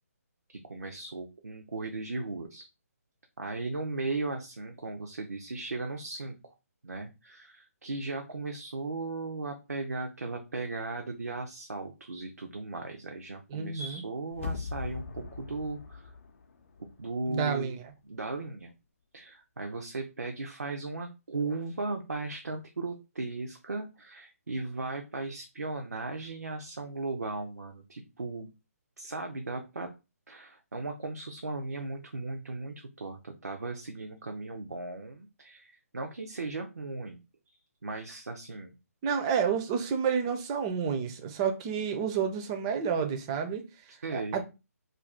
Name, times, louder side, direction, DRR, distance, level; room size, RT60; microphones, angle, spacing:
voice 1, 0.6-2.7 3.4-6.5 6.8-16.1 16.8-17.7 18.1-18.7 19.1-28.5 29.0-29.9 30.3-37.2 37.8-38.7 44.0-44.4, right 3 dB, 80° right, 0.4 m, -37 dB
voice 2, 13.5-14.0 17.3-17.8 39.0-44.4, right 7 dB, 20° right, 0.4 m, -30 dB
sound 1, 14.3-17.3 17.6-17.7, left 4 dB, 50° left, 0.5 m, -40 dB
2.5 x 2.3 x 3.2 m
figure-of-eight pair, 145°, 9 cm